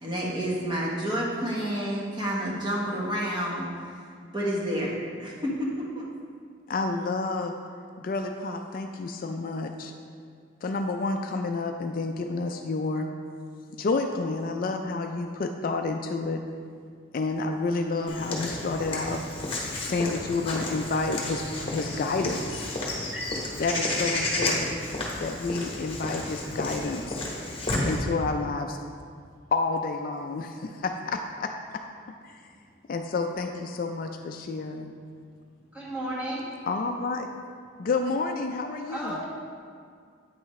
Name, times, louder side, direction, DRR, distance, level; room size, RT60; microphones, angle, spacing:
voice 1, 0.0-3.7 4.3-6.1, equal, 25° right, -4 dB, 1.0 m, -29 dB
voice 2, 6.7-7.6 8.0-9.9 10.6-13.1 13.8-16.4 17.1-19.2 19.8-21.4 21.7-22.7 23.6-24.7 25.2-27.2 27.8-28.8 29.5-31.5 32.2-32.4 32.9-34.9 36.7-37.4 37.8-39.2, left 3 dB, 45° left, 4 dB, 0.3 m, -29 dB
Walk footsteps / Bird vocalization bird call bird song, 18.1-28.0, left 2 dB, 30° left, 1.1 m, -32 dB
voice 3, 22.8-23.2 35.7-36.4 38.9-39.2, right 1 dB, 5° right, -8 dB, 1.6 m, -34 dB
8.8 x 5.8 x 3.1 m, 2.2 s
head